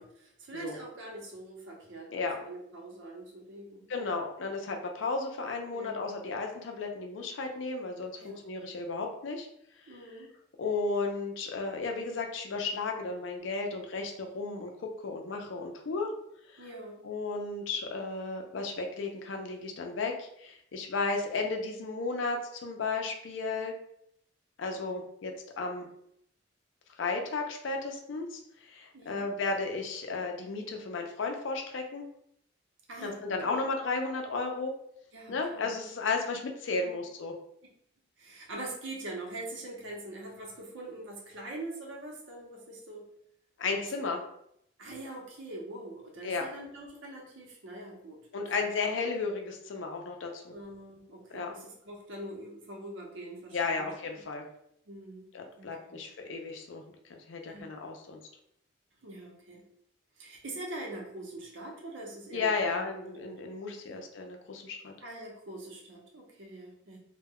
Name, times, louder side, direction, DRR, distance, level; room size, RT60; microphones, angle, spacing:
voice 1, 0.0-4.2 5.7-6.0 8.2-8.4 9.9-10.3 16.6-17.0 28.9-29.3 32.9-33.6 35.1-35.8 36.7-37.0 38.2-43.1 43.8-43.9 44.8-48.2 48.6-48.7 50.5-53.9 54.9-55.3 55.6-56.0 57.5-57.7 59.0-59.6 60.2-62.9 63.2-64.0 65.0-67.0, right 2 dB, 75° right, -1 dB, 0.7 m, -44 dB
voice 2, 3.9-9.5 10.6-16.1 16.5-16.6 17.0-23.7 24.6-25.9 27.0-32.0 33.0-34.7 35.3-37.3 43.6-44.2 46.2-46.5 48.3-50.5 51.3-51.5 53.5-54.4 55.3-58.2 62.3-64.9, left 3 dB, 75° left, 3 dB, 0.5 m, -34 dB
2.1 x 2.1 x 3.5 m, 0.73 s
head